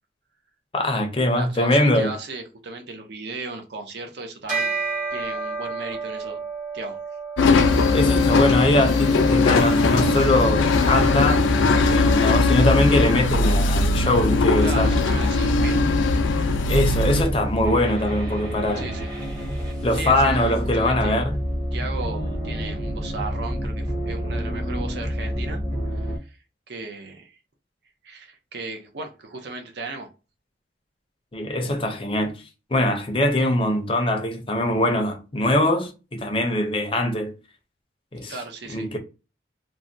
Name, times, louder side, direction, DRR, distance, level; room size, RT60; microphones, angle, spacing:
voice 1, 0.7-2.1 7.9-14.9 16.7-18.9 19.8-21.4 31.3-32.4 32.7-37.3 38.1-38.4 38.7-39.0, left 1 dB, 30° left, 0.5 m, -22 dB
voice 2, 1.3-4.8 5.1-6.4 6.7-7.0 7.3-7.4 14.6-15.8 18.8-19.1 19.9-21.2 21.7-25.6 25.9-26.4 26.7-27.4 28.0-30.1 38.3-38.9, right 3 dB, 60° right, 0.6 m, -36 dB
Bell, 4.5-14.2, right 4 dB, 45° right, 1.2 m, -34 dB
sound 1, 7.4-17.2, left 3 dB, 85° left, 0.4 m, -20 dB
sound 2, 7.6-26.2, equal, 20° right, 0.8 m, -28 dB
3.3 x 2.1 x 2.6 m
head